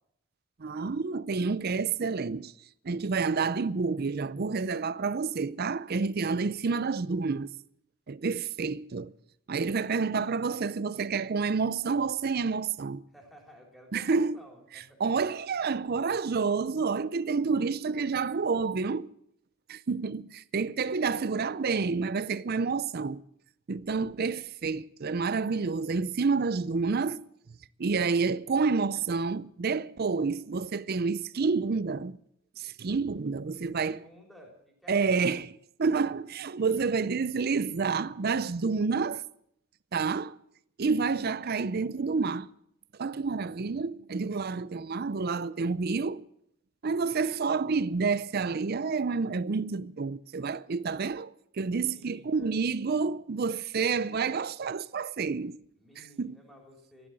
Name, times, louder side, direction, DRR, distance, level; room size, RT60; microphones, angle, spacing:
voice 1, 0.6-2.5 2.8-7.5 8.1-9.1 9.5-13.0 13.9-14.4 15.0-19.1 19.7-23.2 23.7-27.3 27.8-32.2 32.6-34.0 34.9-39.2 39.9-40.4 40.8-42.5 43.0-46.3 46.8-55.6 56.2-56.4, right 4 dB, 45° right, 0.5 m, -29 dB
voice 2, 13.1-15.0 33.5-35.5 36.6-37.0 51.6-52.6 55.7-57.1, equal, ahead, 3.9 m, -54 dB
15.0 x 11.5 x 7.4 m
head